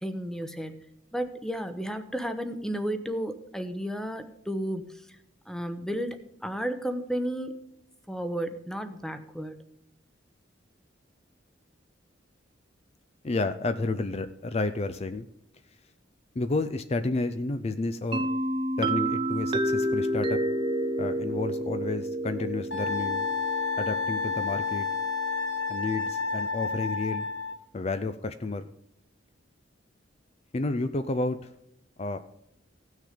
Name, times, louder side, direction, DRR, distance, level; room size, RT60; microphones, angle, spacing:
voice 1, 0.0-0.8 1.1-5.1 5.5-7.6 8.1-9.6, equal, 5° left, 8 dB, 0.8 m, -33 dB
voice 2, 13.2-15.3 16.4-18.3 18.8-20.4 21.0-23.3 23.8-24.9 25.7-27.3 27.7-28.7 30.5-31.5 32.0-32.2, left 3 dB, 35° left, 10 dB, 0.5 m, -31 dB
sound 1, 18.1-25.8, right 1 dB, 25° right, 0.4 m, -30 dB
Wind instrument woodwind instrument, 22.7-27.6, left 5 dB, 75° left, 1.7 m, -30 dB
16.5 x 6.4 x 5.1 m, 0.78 s
head